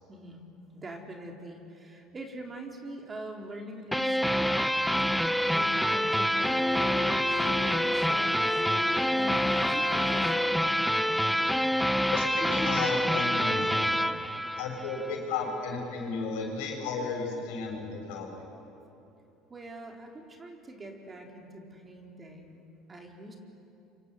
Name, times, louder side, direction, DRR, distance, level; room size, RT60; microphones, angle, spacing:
voice 1, 0.1-4.7 5.5-8.6 9.1-10.7 19.5-23.4, right 1 dB, 25° right, 2 dB, 4.2 m, -43 dB
sound 1, 3.9-15.2, equal, ahead, 0.8 m, -27 dB
Bowed string instrument, 6.4-10.8, left 7 dB, 40° left, 2.0 m, -39 dB
voice 2, 12.1-14.0 14.6-18.4, left 4 dB, 80° left, 1 dB, 6.6 m, -34 dB
27.5 x 25.0 x 8.4 m, 2.9 s
supercardioid pair, 100°, 0 cm